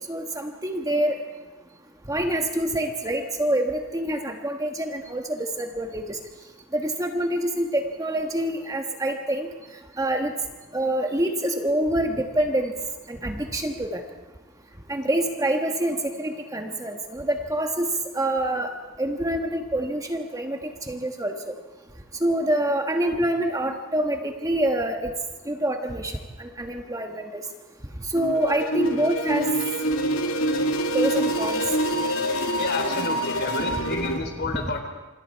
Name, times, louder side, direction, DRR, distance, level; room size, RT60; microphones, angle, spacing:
voice 1, 0.1-1.2 2.1-6.2 6.7-9.5 10.0-10.3 10.7-12.7 13.1-14.0 14.9-17.9 18.1-20.6 20.9-21.5 22.2-25.1 25.4-27.4 28.1-29.5 30.9-31.6, right 1 dB, 15° right, 4 dB, 1.3 m, -26 dB
sound 1, 28.2-34.2, equal, 65° left, 2.5 m, -26 dB
voice 2, 32.6-34.8, left 3 dB, 50° left, 5 dB, 3.6 m, -30 dB
27.0 x 26.5 x 4.6 m, 1.2 s
head